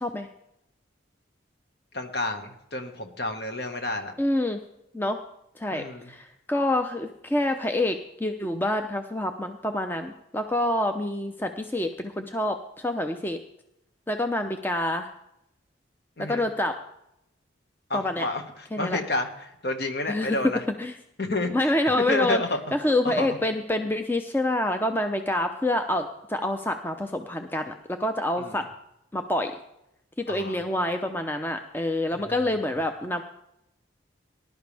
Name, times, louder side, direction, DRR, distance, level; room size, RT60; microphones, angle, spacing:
voice 1, 1.9-4.1 5.7-6.1 16.2-16.4 17.9-18.4 18.8-19.3 19.6-20.6 21.2-21.5 22.1-22.6 23.0-23.4 28.4-28.6 30.3-30.6 32.2-32.3, left 2 dB, 55° left, 5 dB, 1.7 m, -29 dB
voice 2, 4.2-4.6 4.9-5.2 5.6-13.4 14.1-15.1 16.2-16.8 17.9-18.3 18.7-19.0 20.1-20.5 20.8-21.0 21.5-22.4 22.7-28.7 29.1-29.5 30.2-33.2, left 1 dB, 10° left, 6 dB, 0.6 m, -27 dB
19.5 x 11.5 x 3.5 m, 0.80 s
head